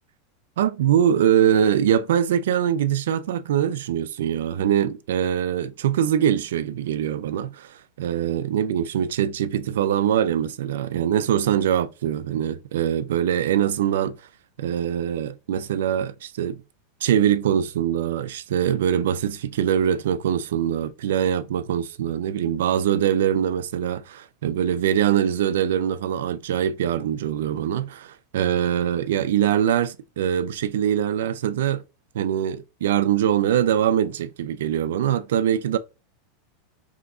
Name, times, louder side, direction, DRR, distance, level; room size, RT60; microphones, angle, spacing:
voice 1, 0.6-14.2 14.6-16.6 17.0-31.8 32.1-35.8, right 9 dB, 85° right, 0.3 m, -23 dB
3.5 x 2.8 x 2.3 m
supercardioid pair, 165°, 0 cm